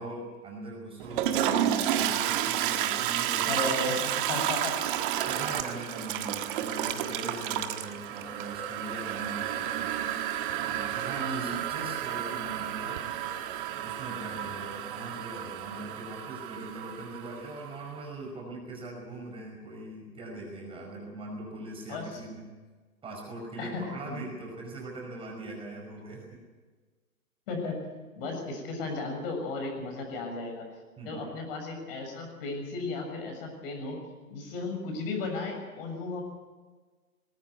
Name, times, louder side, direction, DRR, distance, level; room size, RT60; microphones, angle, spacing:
voice 1, 0.0-3.9 5.2-9.9 10.6-13.0 13.8-22.5 23.0-26.4 31.0-31.3, right 2 dB, 10° right, 0 dB, 5.2 m, -41 dB
Toilet flush, 1.0-17.8, right 11 dB, 35° right, 1.7 m, -31 dB
voice 2, 3.4-4.0 4.3-4.8 11.2-11.6 21.9-22.2 23.6-24.2 27.5-27.8 28.2-30.7 31.0-34.0 34.3-36.2, left 3 dB, 40° left, 3 dB, 6.9 m, -35 dB
20.0 x 18.0 x 9.3 m, 1.4 s
hypercardioid pair, 140°, 45 cm